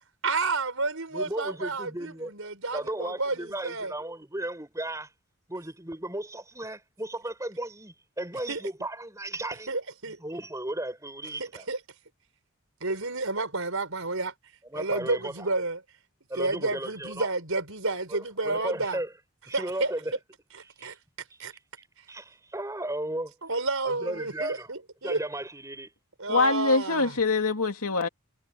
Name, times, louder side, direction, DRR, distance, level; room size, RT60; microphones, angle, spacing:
voice 1, 0.2-3.9 8.5-8.6 9.7-10.2 11.4-11.8 12.8-14.3 14.7-15.8 16.4-19.0 19.5-19.9 20.8-21.0 21.4-21.5 23.4-25.2 26.2-27.2, right 3 dB, 70° right, 5.4 m, -30 dB
voice 2, 1.1-2.3 2.7-5.1 5.5-9.7 10.2-11.6 14.7-15.5 16.3-17.3 18.1-19.1 19.5-20.1 20.8-20.9 22.1-23.3 23.8-24.7 25.0-25.9, right 1 dB, 15° right, 6.0 m, -35 dB
voice 3, 26.3-28.1, left 3 dB, 85° left, 2.5 m, -24 dB
head